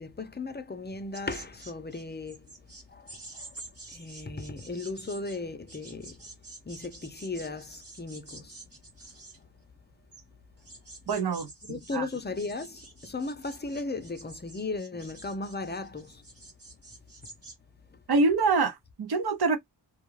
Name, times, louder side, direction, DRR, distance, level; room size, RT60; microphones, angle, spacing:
voice 1, 0.0-6.3 6.6-8.6 9.1-9.5 11.7-16.3 17.9-18.0, left 3 dB, 25° left, 0.5 m, -37 dB
sound 1, 1.1-17.5, right 3 dB, 30° right, 0.9 m, -49 dB
voice 2, 11.1-12.1 18.1-19.6, right 4 dB, 55° right, 0.7 m, -26 dB
2.3 x 2.3 x 3.0 m
wide cardioid pair, 80°, 45 cm